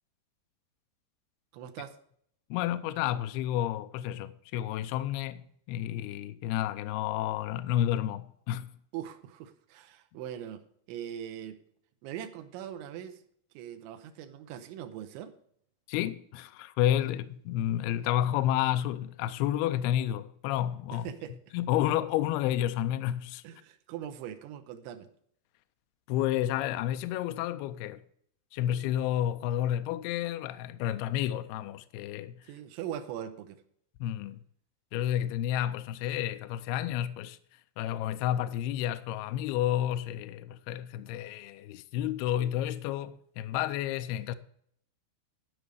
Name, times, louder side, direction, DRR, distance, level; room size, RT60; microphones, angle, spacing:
voice 1, 1.5-2.0 8.9-11.6 12.0-13.2 13.5-15.3 20.9-21.4 23.4-25.1 32.4-33.6, right 10 dB, 90° right, 3.2 m, -41 dB
voice 2, 2.5-8.8 15.9-21.1 21.5-23.4 26.1-28.0 28.5-32.4 34.0-34.4 34.9-37.4 37.8-44.4, left 12 dB, 90° left, 2.2 m, -30 dB
12.5 x 5.2 x 6.2 m
omnidirectional pair, 5.4 m